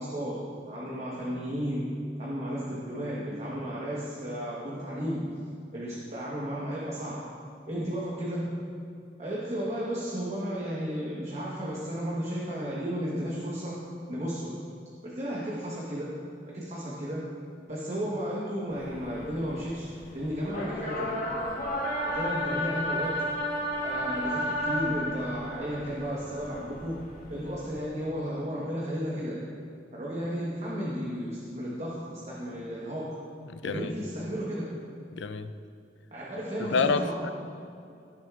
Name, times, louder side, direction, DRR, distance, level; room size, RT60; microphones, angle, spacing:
voice 1, 0.0-5.4 5.7-7.3 7.7-8.6 9.2-14.6 15.0-17.3 17.7-21.2 22.0-23.2 23.8-29.5 29.9-33.3 33.6-34.8 36.1-37.3, equal, 40° right, -6 dB, 1.3 m, -34 dB
sound 1, 18.7-27.8, equal, 45° left, 1.7 m, -33 dB
voice 2, 33.4-33.9 35.1-35.5 36.6-37.3, left 4 dB, 85° left, 10 dB, 0.5 m, -28 dB
16.0 x 6.5 x 2.5 m, 2.5 s
head